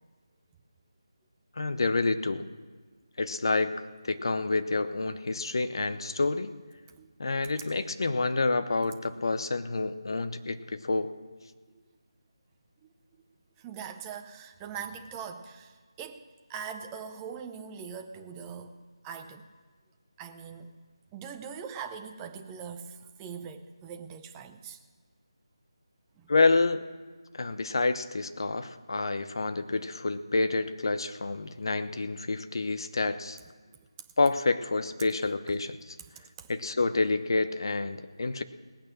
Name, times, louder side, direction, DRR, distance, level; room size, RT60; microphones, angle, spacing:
voice 1, 1.6-2.5 3.2-6.5 7.2-11.1 26.3-26.8 27.3-33.4 34.2-36.0 36.5-38.4, left 3 dB, 55° left, 11 dB, 0.9 m, -28 dB
voice 2, 13.6-16.2 16.5-19.5 20.2-20.7 21.1-24.8 26.2-26.3 36.1-36.5, right 7 dB, 10° right, 6 dB, 0.6 m, -42 dB
18.5 x 8.7 x 6.4 m, 1.5 s
figure-of-eight pair, 165°, 3 cm